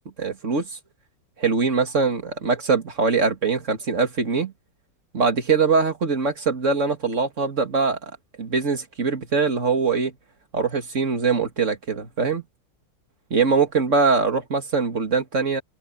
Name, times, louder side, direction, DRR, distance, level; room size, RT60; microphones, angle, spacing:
voice 1, 0.2-0.8 1.4-4.5 5.1-8.0 8.4-10.1 10.5-12.4 13.3-15.6, right 4 dB, 40° right, 2.5 m, -22 dB
open air
omnidirectional pair, 2.1 m